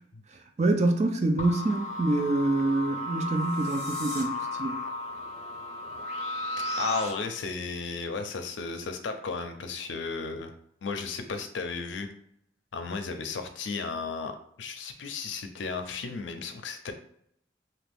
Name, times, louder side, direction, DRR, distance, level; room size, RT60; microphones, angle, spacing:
voice 1, 0.6-4.7, right 2 dB, 35° right, 0.4 m, -26 dB
sound 1, 1.4-7.1, left 1 dB, 35° left, 0.5 m, -34 dB
sound 2, 3.3-4.2, equal, 10° left, 1.1 m, -43 dB
voice 2, 6.8-10.5 10.8-12.1 12.7-16.9, left 4 dB, 85° left, 0.5 m, -34 dB
2.8 x 2.6 x 3.4 m
head